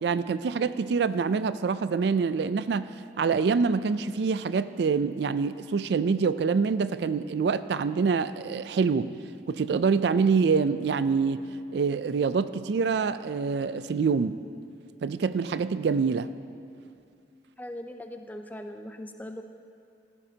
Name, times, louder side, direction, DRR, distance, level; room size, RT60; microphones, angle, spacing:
voice 1, 0.0-2.9 3.2-9.1 9.5-14.4 15.0-16.3, right 5 dB, 70° right, 14 dB, 0.3 m, -26 dB
voice 2, 17.6-19.4, left 1 dB, 10° left, 6 dB, 0.5 m, -40 dB
16.5 x 14.0 x 2.8 m, 2.4 s
head